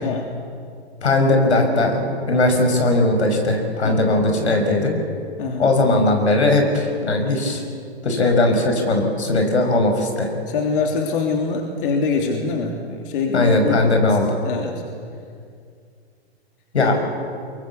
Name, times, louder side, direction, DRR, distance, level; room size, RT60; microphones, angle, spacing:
voice 1, 1.0-4.9 5.6-7.6 8.0-10.3 13.3-14.3 16.7-17.0, left 2 dB, 90° left, 4 dB, 5.9 m, -18 dB
voice 2, 5.4-5.7 10.5-14.1 14.4-14.7 16.8-16.9, left 4 dB, 55° left, 2 dB, 3.3 m, -24 dB
23.5 x 23.0 x 8.4 m, 2.3 s
hypercardioid pair, 130°, 32 cm